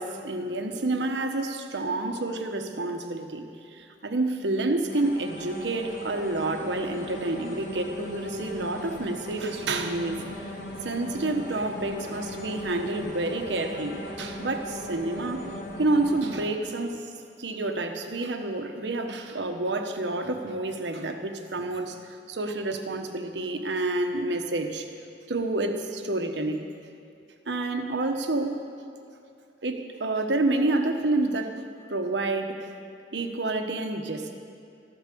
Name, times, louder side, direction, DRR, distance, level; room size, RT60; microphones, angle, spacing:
voice 1, 0.0-10.2 10.5-15.5 15.8-17.1 17.4-22.0 22.3-24.9 25.3-26.6 27.5-28.6 29.6-31.6 31.9-32.7 33.1-34.3, right 2 dB, 90° right, 5 dB, 1.2 m, -29 dB
sound 1, 4.9-16.4, left 1 dB, 90° left, 2.6 m, -38 dB
14.0 x 12.0 x 6.9 m, 2.5 s
head